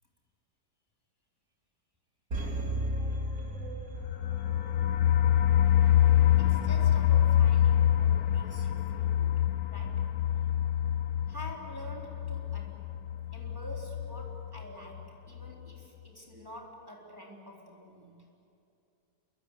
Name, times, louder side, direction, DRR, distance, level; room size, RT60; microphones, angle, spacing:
sound 1, 2.3-4.5 4.8-4.9, right 1 dB, 60° right, 3.8 m, -33 dB
sound 2, 4.0-14.7 15.0-15.1 15.4-15.5, left 11 dB, 65° left, 1.3 m, -26 dB
voice 1, 6.4-9.4 9.7-10.1 11.3-12.9 13.3-18.2, equal, 10° right, -2 dB, 3.9 m, -47 dB
27.5 x 24.0 x 8.4 m, 2.6 s
omnidirectional pair, 1.8 m